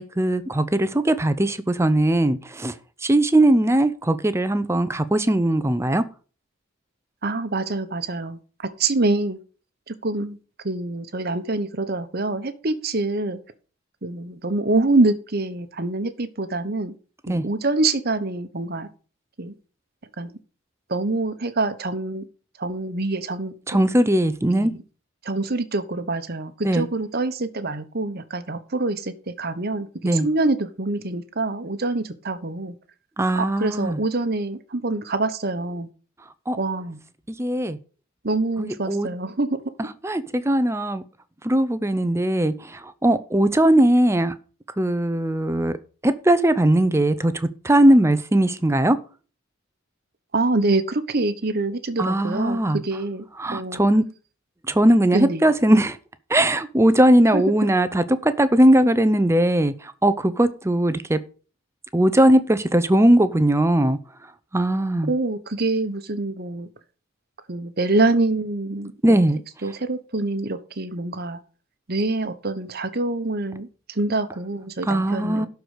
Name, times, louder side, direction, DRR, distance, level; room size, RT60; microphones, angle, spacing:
voice 1, 0.0-2.7 3.0-6.0 17.3-17.4 23.7-24.7 26.6-26.9 30.0-30.3 33.2-34.0 36.5-36.6 37.4-37.8 38.6-39.1 40.0-41.0 41.4-44.3 44.8-45.7 46.0-49.0 52.0-52.8 53.4-54.0 54.7-56.0 56.3-59.7 60.0-61.2 61.9-64.0 64.5-65.1 69.0-69.4 74.9-75.5, right 1 dB, 15° right, 0.6 m, -19 dB
voice 2, 7.2-9.4 9.9-10.4 10.6-13.4 14.0-16.9 17.3-18.9 19.4-19.5 20.2-20.4 20.9-22.3 22.6-23.5 24.6-24.8 25.2-32.8 33.3-35.9 36.6-37.0 38.2-39.6 50.3-53.2 53.5-53.8 55.1-55.5 57.3-57.4 65.1-66.7 67.5-69.3 69.6-71.4 71.9-75.5, right 2 dB, 50° right, 1.0 m, -25 dB
11.5 x 4.7 x 6.6 m
head